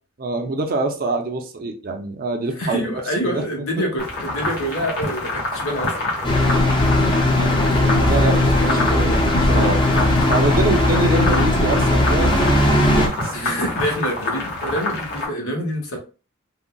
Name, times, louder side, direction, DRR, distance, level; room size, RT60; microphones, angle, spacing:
voice 1, 0.2-2.9 3.2-3.4 3.8-3.9 6.2-6.6 7.4-9.1 9.4-12.3 12.9-13.6, right 2 dB, 45° right, 0.5 m, -25 dB
voice 2, 2.6-5.9 8.4-9.2 11.3-11.5 13.3-16.0, equal, 75° left, 1.0 m, -26 dB
sound 1, 4.0-15.3, left 2 dB, 50° left, 1.1 m, -27 dB
sound 2, 6.2-13.1, left 1 dB, 25° left, 0.6 m, -18 dB
3.7 x 2.1 x 2.2 m
head